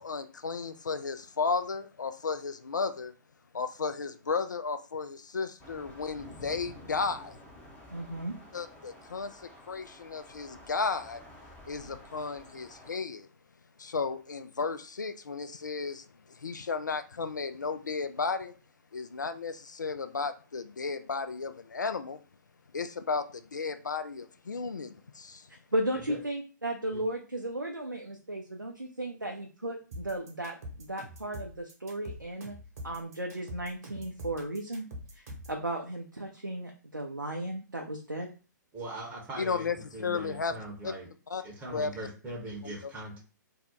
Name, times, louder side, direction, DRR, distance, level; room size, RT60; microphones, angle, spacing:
voice 1, 0.0-3.1 3.5-7.3 8.5-9.4 9.7-11.2 11.7-13.3 13.8-18.5 18.9-22.2 22.7-25.5 39.4-40.5 40.8-40.9 41.3-41.4 41.7-41.9 42.6-42.7, left 4 dB, 70° left, 0.4 m, -34 dB
Thunder / Rain, 5.6-13.0, left 1 dB, 15° left, 0.6 m, -51 dB
voice 2, 7.9-8.3 25.7-32.6 32.8-34.9 35.1-38.3, right 1 dB, 85° right, 0.5 m, -35 dB
sound 1, 29.9-35.6, equal, 55° right, 1.0 m, -44 dB
voice 3, 38.7-41.1 41.4-43.2, right 1 dB, 15° right, 0.8 m, -41 dB
2.7 x 2.1 x 3.6 m
figure-of-eight pair, 120°, 10 cm